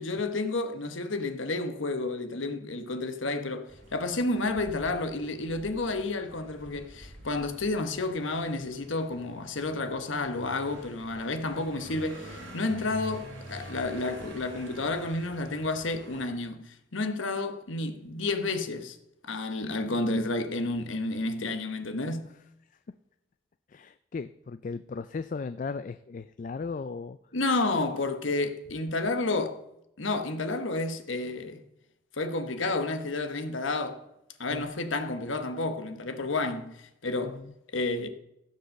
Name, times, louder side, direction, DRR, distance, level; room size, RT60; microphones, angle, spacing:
voice 1, 0.0-3.7 3.9-19.0 19.2-22.3 27.3-29.6 30.0-31.6 32.1-34.1 34.4-37.4 37.7-38.1, left 2 dB, 75° left, 1.2 m, -31 dB
sound 1, 3.7-16.3, right 1 dB, 70° right, 4.0 m, -47 dB
voice 2, 23.7-27.2 34.5-34.7 37.2-37.5, left 4 dB, 40° left, 0.3 m, -37 dB
15.5 x 5.5 x 6.5 m
head